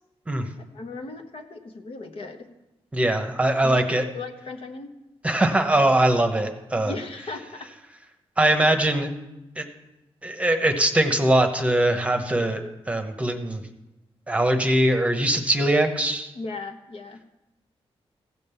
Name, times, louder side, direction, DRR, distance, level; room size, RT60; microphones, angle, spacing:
voice 1, 0.7-2.5 3.6-4.9 6.8-7.7 16.3-17.2, left 3 dB, 65° left, 5 dB, 1.1 m, -37 dB
voice 2, 2.9-4.0 5.2-6.9 8.4-9.1 9.6-9.7 10.2-13.6 14.3-16.3, right 1 dB, 10° right, 5 dB, 1.0 m, -21 dB
15.5 x 5.3 x 6.8 m, 0.95 s
wide cardioid pair, 120°, 10 cm